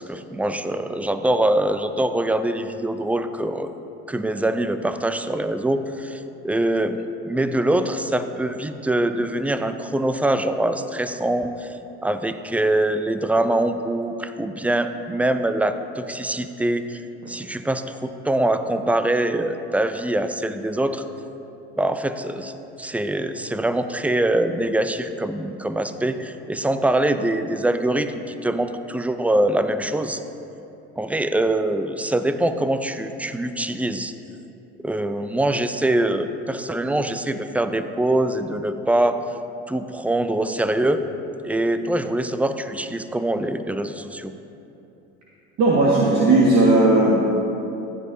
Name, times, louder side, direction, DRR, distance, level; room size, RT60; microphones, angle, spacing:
voice 1, 0.0-3.7 4.1-17.0 17.3-21.1 21.8-22.5 22.8-30.2 31.0-34.1 34.8-39.2 39.7-41.0 41.4-44.3, right 1 dB, 5° right, 10 dB, 0.4 m, -23 dB
voice 2, 45.6-47.2, right 2 dB, 55° right, -5 dB, 1.8 m, -16 dB
15.0 x 9.7 x 2.8 m, 2.9 s
hypercardioid pair, 75°, 34 cm